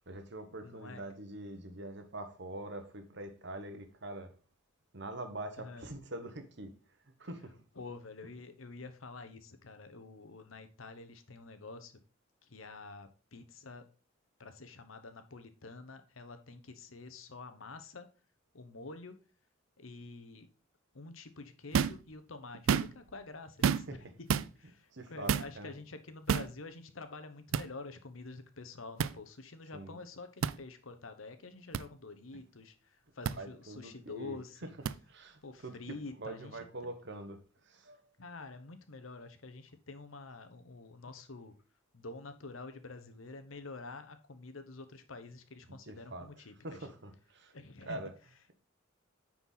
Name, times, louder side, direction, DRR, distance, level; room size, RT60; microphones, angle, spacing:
voice 1, 0.1-4.4 4.9-6.8 7.0-7.6 23.9-24.1 24.9-25.7 29.7-30.0 33.4-34.7 35.1-38.0 45.9-46.3 46.6-47.5 47.8-48.1, right 1 dB, 60° right, 1.3 m, -44 dB
voice 2, 0.6-1.0 5.6-5.9 7.8-12.0 12.4-13.8 14.4-18.1 18.5-19.2 19.8-20.5 20.9-24.3 24.6-34.7 35.4-36.9 38.2-41.5 41.9-46.8 47.5-48.0, left 3 dB, 85° left, 1.1 m, -48 dB
sound 1, 21.7-22.0 22.5-23.1 23.6-24.0 24.3-24.5 25.3-25.5 26.3-26.5 27.5-27.7 29.0-29.1 30.4-30.6 31.7-31.8 33.2-33.4 34.9-35.0, right 7 dB, 85° right, 0.4 m, -29 dB
9.5 x 4.6 x 4.1 m
head